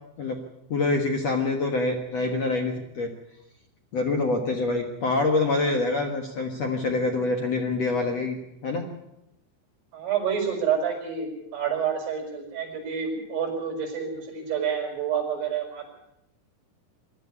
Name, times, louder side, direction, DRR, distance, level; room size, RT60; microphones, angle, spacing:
voice 1, 0.7-3.1 3.9-8.9, left 3 dB, 70° left, 3 dB, 1.6 m, -26 dB
voice 2, 9.9-15.9, right 7 dB, 60° right, 0 dB, 7.6 m, -28 dB
22.5 x 12.5 x 9.5 m, 0.85 s
omnidirectional pair, 5.5 m